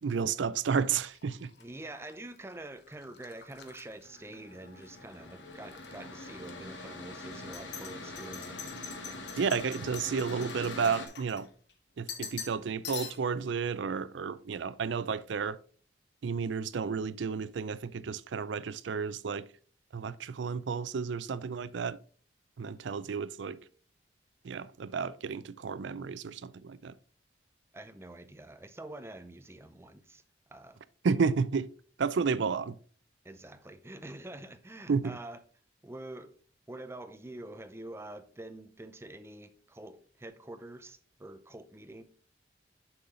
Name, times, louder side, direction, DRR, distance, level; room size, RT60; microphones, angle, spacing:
voice 1, 0.0-1.5 9.4-11.5 12.0-15.6 16.2-19.4 19.9-22.0 22.6-23.6 24.4-26.9 31.0-31.7 32.0-32.8 34.9-35.1, right 5 dB, 80° right, 0.4 m, -32 dB
sound 1, 1.0-5.0 5.3-6.0 6.4-6.5 7.3-11.7 12.1-12.6 12.8-13.4, left 7 dB, 60° left, 1.1 m, -45 dB
voice 2, 1.6-8.6 9.1-9.3 27.7-30.2 30.5-30.8 33.2-35.4 35.8-36.3 36.7-42.0, right 1 dB, 15° right, 0.5 m, -46 dB
Mechanical fan, 4.0-11.1, left 2 dB, 85° left, 1.4 m, -44 dB
7.0 x 5.5 x 3.8 m
head